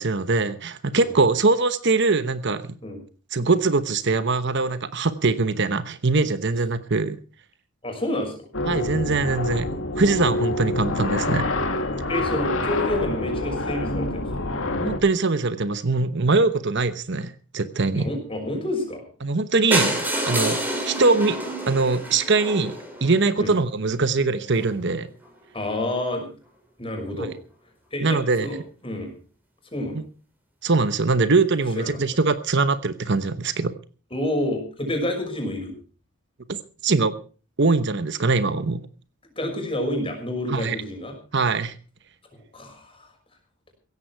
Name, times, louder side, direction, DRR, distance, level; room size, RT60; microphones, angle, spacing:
voice 1, 0.0-2.7 3.3-7.2 8.6-11.5 14.8-18.1 19.2-21.4 21.7-25.1 27.2-27.3 28.0-28.5 30.6-33.7 36.5-36.6 36.8-37.1 37.6-38.8 40.5-40.8 41.3-41.8, right 3 dB, 55° right, 12 dB, 1.0 m, -22 dB
voice 2, 7.8-8.3 11.3-11.4 12.1-14.2 17.9-19.0 23.4-23.5 25.5-26.3 26.8-27.3 27.9-28.6 28.8-29.1 29.7-30.0 31.8-32.0 34.1-35.7 39.4-41.1 42.5-43.1, left 1 dB, 25° left, 3 dB, 6.0 m, -28 dB
sound 1, 8.5-15.0, left 2 dB, 65° left, 2.3 m, -26 dB
sound 2, 19.7-23.6 24.2-24.3 24.6-24.7 25.0-25.1 25.2-25.3, right 1 dB, 10° right, 4.8 m, -28 dB
16.5 x 14.5 x 4.6 m, 0.37 s
head